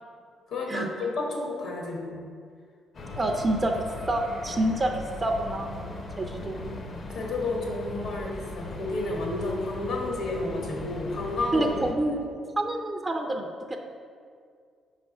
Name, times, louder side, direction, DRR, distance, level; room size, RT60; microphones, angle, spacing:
voice 1, 0.5-2.2 6.9-11.7, left 2 dB, 75° left, -1 dB, 1.2 m, -31 dB
sound 1, 2.9-11.9, left 2 dB, 50° left, 0.6 m, -38 dB
voice 2, 3.2-6.8 11.5-12.3 12.6-13.8, right 1 dB, 25° right, 4 dB, 0.4 m, -28 dB
5.3 x 3.3 x 5.4 m, 2.1 s
cardioid pair, 90°, 0 cm